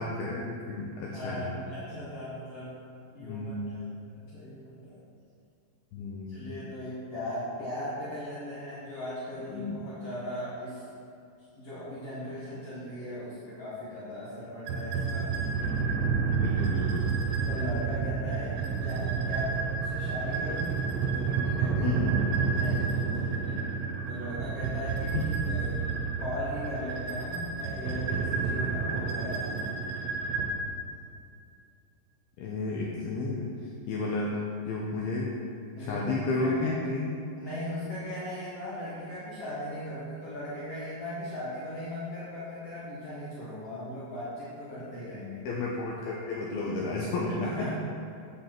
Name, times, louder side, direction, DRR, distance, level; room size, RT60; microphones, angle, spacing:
voice 1, 0.0-1.6 3.2-3.7 5.9-6.5 9.5-9.9 16.3-17.1 21.8-22.2 25.1-25.3 32.4-33.5 33.9-34.4 34.7-35.3 35.8-37.1 45.5-47.7, left 3 dB, 85° left, -2 dB, 2.1 m, -32 dB
voice 2, 1.0-2.8 3.1-5.0 6.3-10.8 11.5-15.3 17.5-20.8 21.1-22.0 22.5-23.7 24.1-29.8 35.8-36.8 37.4-45.4 47.4-47.7, left 1 dB, 65° left, -9 dB, 1.5 m, -38 dB
sound 1, 14.7-30.5, right 5 dB, 75° right, 2.5 m, -30 dB
8.5 x 8.1 x 4.4 m, 2.5 s
omnidirectional pair, 5.4 m